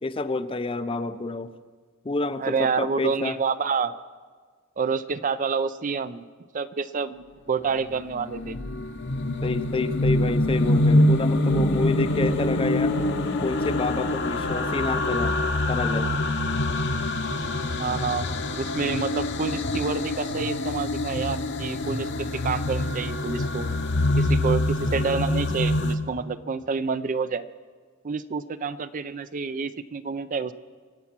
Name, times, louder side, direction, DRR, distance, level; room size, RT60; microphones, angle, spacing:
voice 1, 0.0-1.5 2.0-3.4 9.4-13.0 13.4-15.4 15.7-16.1, left 3 dB, 25° left, 12 dB, 0.5 m, -28 dB
voice 2, 2.4-4.0 4.8-6.2 6.5-8.6 17.8-18.3 18.5-23.7 24.2-27.4 28.0-30.5, right 5 dB, 40° right, 13 dB, 0.4 m, -28 dB
sound 1, 7.9-26.0, left 1 dB, 55° left, 0.9 m, -25 dB
24.5 x 8.3 x 5.9 m, 1.5 s
head